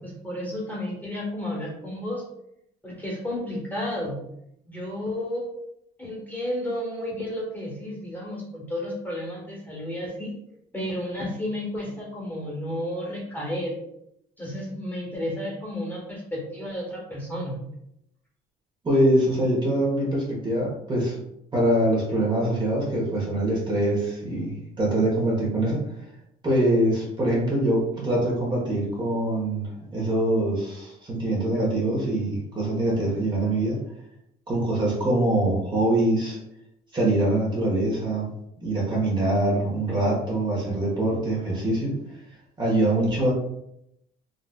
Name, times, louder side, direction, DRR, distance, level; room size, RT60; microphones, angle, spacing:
voice 1, 0.0-2.2 2.8-4.2 4.6-5.4 6.0-10.3 10.7-13.7 14.4-17.6, left 1 dB, 10° left, -4 dB, 1.2 m, -32 dB
voice 2, 18.8-21.2 21.5-25.8 26.4-33.8 34.5-36.4 36.9-38.3 38.6-42.0 42.6-43.3, right 1 dB, 25° right, -4 dB, 1.1 m, -24 dB
3.9 x 2.4 x 2.2 m, 0.79 s
cardioid pair, 110°, 17 cm